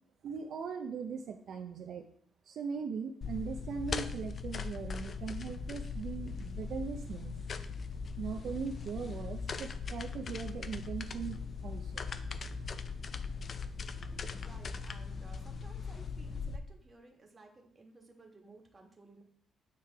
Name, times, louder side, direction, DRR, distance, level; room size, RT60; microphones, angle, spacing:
voice 1, 0.2-2.0 2.5-7.3 8.2-12.1, right 6 dB, 65° right, 4 dB, 0.5 m, -40 dB
sound 1, 3.2-16.6, left 5 dB, 45° left, 0.4 m, -40 dB
voice 2, 14.3-19.2, right 3 dB, 30° right, 2 dB, 1.3 m, -57 dB
8.9 x 3.2 x 3.4 m, 0.62 s
cardioid pair, 90°, 0 cm